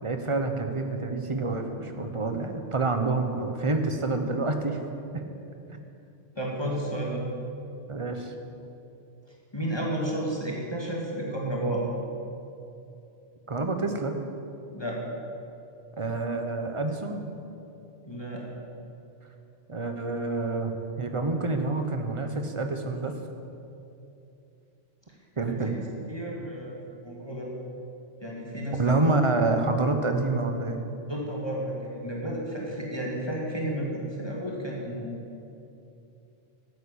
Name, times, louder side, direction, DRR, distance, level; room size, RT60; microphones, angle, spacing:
voice 1, 0.0-4.8 5.1-5.2 7.9-8.3 13.5-14.2 16.0-17.2 19.7-23.1 25.4-25.8 28.8-30.8, right 3 dB, 25° right, 6 dB, 1.2 m, -27 dB
voice 2, 6.4-7.2 9.5-11.8 14.7-15.0 18.1-18.4 25.5-27.5 28.2-29.2 31.1-35.1, right 1 dB, 20° left, -3 dB, 2.2 m, -32 dB
13.0 x 9.4 x 8.7 m, 2.7 s
omnidirectional pair, 1.3 m